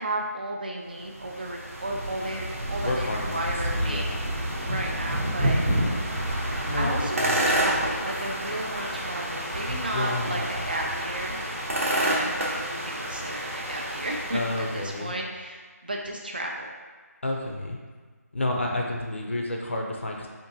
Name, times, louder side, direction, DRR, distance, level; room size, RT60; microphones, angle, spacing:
voice 1, 0.0-4.1 4.6-5.6 6.8-11.4 11.9-16.7, right 1 dB, 30° right, 0 dB, 0.4 m, -33 dB
sound 1, 1.0-15.0, right 1 dB, 50° right, 0.8 m, -29 dB
voice 2, 2.8-3.4 3.8-4.3 6.7-7.5 9.9-10.5 14.3-15.1 17.2-17.8 18.3-20.3, left 2 dB, 45° left, 0 dB, 0.5 m, -30 dB
4.4 x 2.6 x 2.7 m, 1.5 s
figure-of-eight pair, 175°, 9 cm